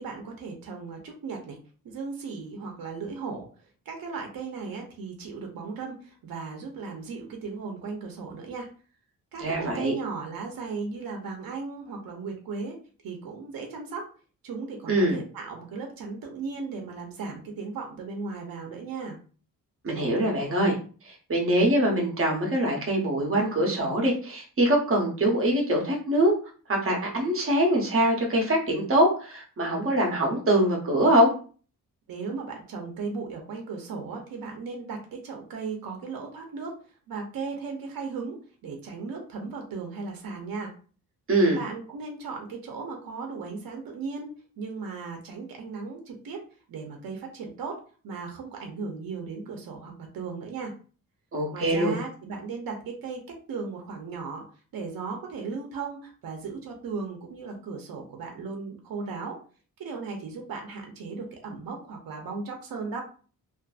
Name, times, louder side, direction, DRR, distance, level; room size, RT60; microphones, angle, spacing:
voice 1, 0.0-1.6 1.8-3.5 3.9-8.7 9.3-12.8 13.0-14.0 14.4-19.2 32.1-36.7 37.1-40.7 41.5-46.4 46.7-47.8 48.0-50.7 51.5-54.4 54.7-59.4 59.8-63.0, right 4 dB, 75° right, 3 dB, 0.6 m, -36 dB
voice 2, 9.4-9.9 14.9-15.2 19.8-20.8 21.0-26.3 26.7-31.3 41.3-41.6 51.3-51.9, right 1 dB, 40° right, 0 dB, 0.8 m, -23 dB
2.5 x 2.5 x 2.3 m, 0.39 s
wide cardioid pair, 160°, 35 cm